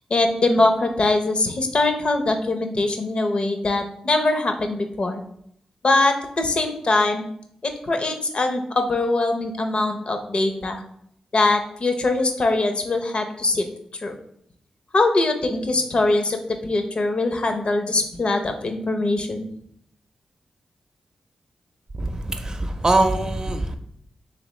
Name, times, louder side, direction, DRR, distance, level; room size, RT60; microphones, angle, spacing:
voice 1, 0.1-5.2 5.8-7.2 7.6-10.8 11.3-13.7 14.0-14.1 14.9-19.4, left 2 dB, 55° left, 6 dB, 0.7 m, -22 dB
voice 2, 22.0-23.8, right 2 dB, 30° right, 5 dB, 0.5 m, -22 dB
4.2 x 3.4 x 3.1 m, 0.68 s
cardioid pair, 50°, 2 cm